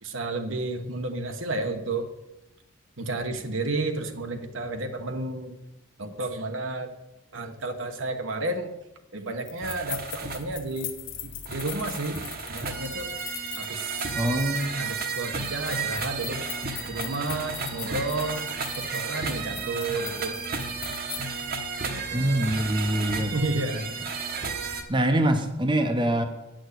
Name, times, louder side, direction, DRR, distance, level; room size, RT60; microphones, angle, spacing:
voice 1, 0.0-2.1 3.0-5.6 6.0-6.9 7.3-8.7 9.1-10.9 11.2-12.2 12.5-13.1 13.6-14.2 14.8-16.4 16.9-18.4 18.7-20.4 21.8-22.5 23.3-23.9, right 2 dB, 80° right, 5 dB, 1.2 m, -31 dB
sound 1, 9.5-21.6, left 12 dB, 70° left, 1.1 m, -41 dB
sound 2, 9.6-24.8, right 4 dB, 45° right, 1.1 m, -33 dB
voice 2, 14.1-14.7 22.1-23.3 24.9-26.2, right 1 dB, 25° right, 5 dB, 0.8 m, -24 dB
9.9 x 6.3 x 8.3 m, 0.99 s
head